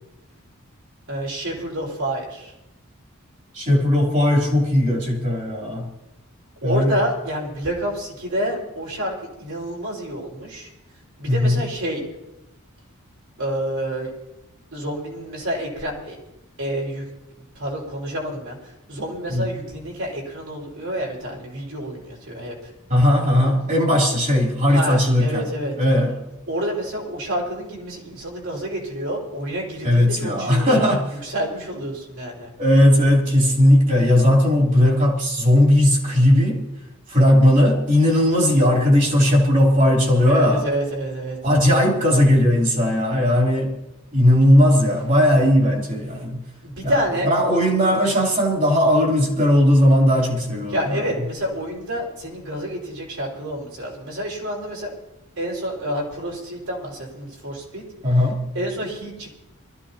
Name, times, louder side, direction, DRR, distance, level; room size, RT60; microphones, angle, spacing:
voice 1, 1.1-2.5 6.6-10.7 11.2-12.0 13.4-14.1 14.7-16.2 16.6-17.0 17.5-22.7 24.7-25.7 26.5-30.8 31.1-32.5 40.3-41.4 46.6-47.6 50.7-54.9 55.4-57.8 58.1-58.2 58.5-59.4, equal, 65° right, 5.0 m, -28 dB
voice 2, 3.5-5.9 6.6-7.0 11.3-11.6 19.3-19.5 22.9-25.5 25.8-26.2 29.8-31.1 32.6-36.6 37.1-40.7 41.4-43.8 44.1-46.4 46.8-47.0 47.3-51.1 58.0-58.5, left 1 dB, 35° right, 3.2 m, -17 dB
23.5 x 14.5 x 2.9 m
head